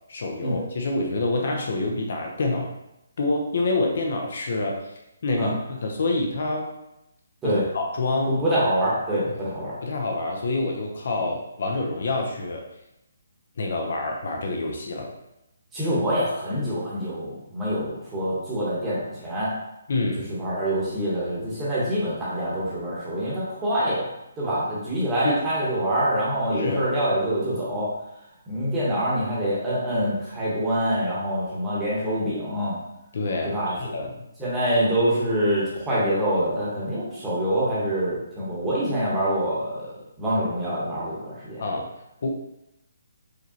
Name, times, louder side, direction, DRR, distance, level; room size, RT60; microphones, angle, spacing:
voice 1, 0.1-2.7 3.2-4.9 5.2-6.7 7.4-8.3 9.3-9.4 9.8-12.6 13.6-15.1 19.9-20.3 25.2-25.3 26.5-26.9 33.1-34.3 41.6-41.9 42.2-42.3, left 2 dB, 50° left, 1 dB, 0.6 m, -27 dB
voice 2, 8.3-9.8 15.7-19.5 20.3-24.0 24.4-27.9 28.5-32.8 33.4-33.8 34.4-39.9 40.2-41.6, equal, 10° right, -8 dB, 1.0 m, -25 dB
4.9 x 3.1 x 2.8 m, 0.85 s
hypercardioid pair, 175°, 0 cm